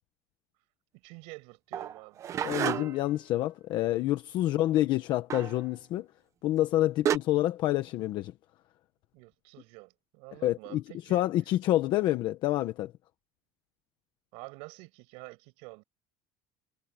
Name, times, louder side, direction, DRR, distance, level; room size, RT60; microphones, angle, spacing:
voice 1, 1.0-2.3 9.1-11.2 14.3-15.8, right 28 dB, 70° right, 5.5 m, -48 dB
sound 1, 1.7-3.1 5.3-5.6 6.6-6.7 7.1-7.2, right 9 dB, 30° right, 0.8 m, -30 dB
voice 2, 2.4-6.1 6.4-8.3 10.4-10.8 11.1-12.9, left 14 dB, 45° left, 1.0 m, -27 dB
cardioid pair, 180°, 11 cm